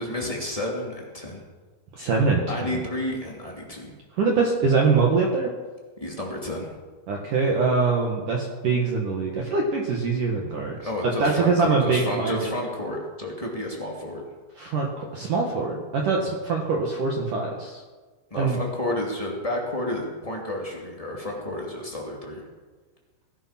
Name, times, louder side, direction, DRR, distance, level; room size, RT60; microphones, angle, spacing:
voice 1, 0.0-1.4 2.5-3.9 6.0-6.7 10.8-14.2 18.3-22.4, left 1 dB, 25° left, -2 dB, 0.7 m, -31 dB
voice 2, 2.0-2.7 4.1-5.5 7.1-10.8 11.0-12.5 14.6-17.8 18.3-18.6, right 4 dB, 60° right, 0 dB, 2.3 m, -23 dB
20.0 x 12.0 x 5.9 m, 1.4 s
omnidirectional pair, 5.7 m